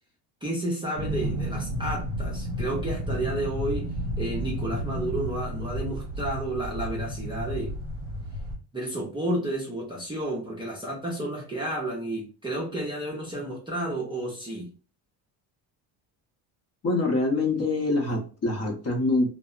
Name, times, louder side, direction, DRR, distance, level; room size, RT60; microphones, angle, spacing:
voice 1, 0.4-3.9 4.2-7.7 8.7-14.7, right 1 dB, 10° right, 0.6 m, -31 dB
sound 1, 1.0-8.6, equal, 40° right, 0.8 m, -32 dB
voice 2, 16.8-19.3, left 2 dB, 35° left, 0.8 m, -25 dB
2.6 x 2.1 x 2.3 m
cardioid pair, 105°, 45 cm